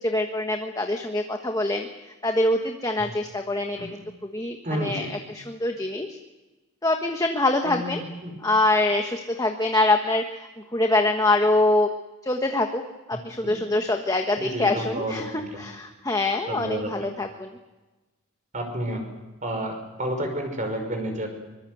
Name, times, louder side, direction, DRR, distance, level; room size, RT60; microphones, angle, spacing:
voice 1, 0.0-4.0 4.3-6.2 6.8-8.0 8.4-11.9 12.2-12.8 13.1-17.5, left 2 dB, 15° left, 4 dB, 1.4 m, -24 dB
voice 2, 4.6-5.1 7.6-8.3 13.1-13.6 14.4-15.1 15.5-15.6 16.5-17.1 18.5-19.0 19.4-21.3, right 1 dB, 35° right, 4 dB, 5.5 m, -31 dB
24.5 x 22.5 x 7.9 m, 1.1 s
head